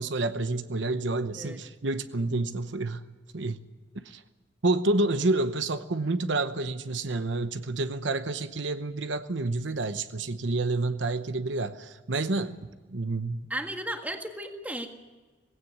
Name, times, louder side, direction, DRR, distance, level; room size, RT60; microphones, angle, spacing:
voice 1, 0.0-3.0 3.3-3.6 4.1-4.2 4.6-12.6 12.9-13.5, right 2 dB, 70° right, 0.9 m, -29 dB
voice 2, 1.3-1.6 13.5-14.9, right 1 dB, 10° right, 1.8 m, -35 dB
18.0 x 17.0 x 9.5 m
head